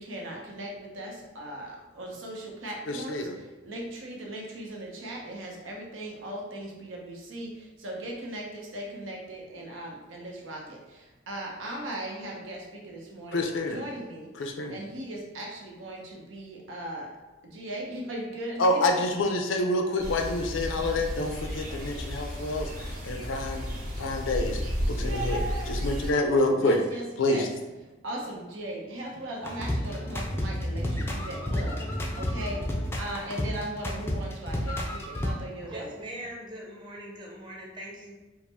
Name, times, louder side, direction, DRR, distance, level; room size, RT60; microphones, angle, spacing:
voice 1, 0.0-17.2 17.4-19.0 21.2-21.3 24.8-25.9 26.6-27.5 28.0-35.9, right 1 dB, 85° right, -1 dB, 0.9 m, -38 dB
voice 2, 2.9-3.3 13.3-13.8 14.4-14.8 18.6-23.7 24.0-24.6 24.9-25.4 25.7-26.8 27.2-27.5, left 2 dB, 75° left, 4 dB, 0.5 m, -27 dB
sound 1, 20.0-26.1, equal, 45° right, 1.1 m, -33 dB
sound 2, 29.4-35.3, left 1 dB, 15° left, 0.4 m, -31 dB
voice 3, 35.7-38.1, right 1 dB, 25° right, -3 dB, 0.8 m, -41 dB
4.7 x 2.1 x 3.4 m, 1.1 s
head